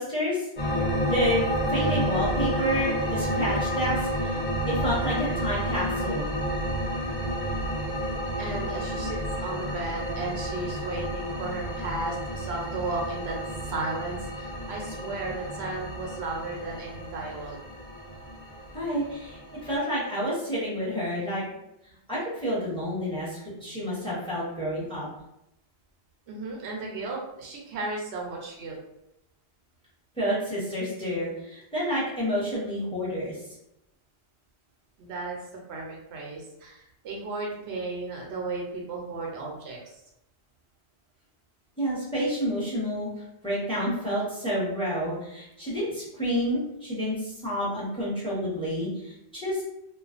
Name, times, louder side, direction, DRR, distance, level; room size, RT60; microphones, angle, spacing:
voice 1, 0.0-4.4 4.7-6.3 18.7-21.4 22.1-25.1 30.2-33.5 41.8-49.6, equal, 5° left, -8 dB, 0.9 m, -29 dB
sound 1, 0.6-19.7, equal, 45° left, 0.9 m, -30 dB
voice 2, 8.4-13.4 13.7-17.6 21.5-21.6 23.6-23.7 26.3-28.8 35.0-35.4 35.7-39.9, right 3 dB, 90° right, -1 dB, 0.9 m, -34 dB
2.4 x 2.1 x 2.4 m, 0.83 s
omnidirectional pair, 1.1 m